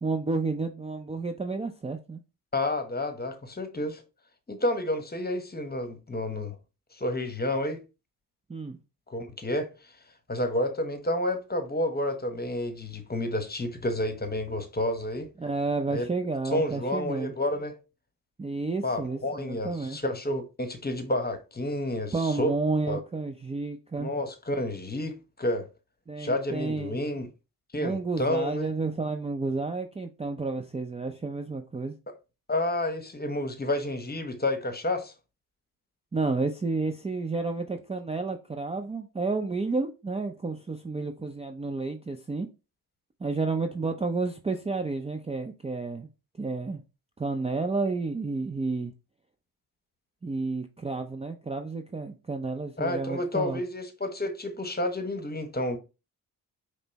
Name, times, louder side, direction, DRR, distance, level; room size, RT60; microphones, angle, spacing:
voice 1, 0.0-2.2 8.5-8.8 15.4-17.3 18.4-20.0 22.1-24.1 26.1-27.0 27.8-32.0 36.1-42.5 43.2-46.1 46.4-46.8 47.2-48.9 50.2-53.6, right 3 dB, 15° right, 0.5 m, -31 dB
voice 2, 2.5-4.0 4.5-6.6 6.9-7.8 9.1-9.7 10.3-15.3 15.9-16.1 16.5-17.8 18.8-22.5 22.9-23.0 24.0-25.7 26.2-27.3 27.7-28.7 32.5-35.1 52.8-55.8, left 1 dB, 20° left, 1.0 m, -30 dB
5.3 x 2.0 x 4.0 m
supercardioid pair, 50°, 42 cm